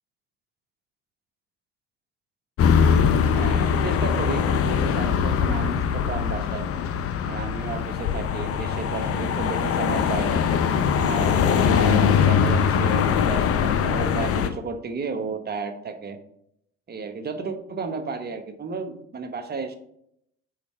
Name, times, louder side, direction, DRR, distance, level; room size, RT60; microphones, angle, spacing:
sound 1, 2.6-14.5, left 7 dB, 50° left, 0.6 m, -22 dB
voice 1, 3.3-6.7 7.2-10.4 11.0-16.2 16.9-19.8, right 4 dB, 30° right, 7 dB, 1.0 m, -32 dB
5.1 x 4.1 x 4.6 m, 0.73 s
hypercardioid pair, 65°, 31 cm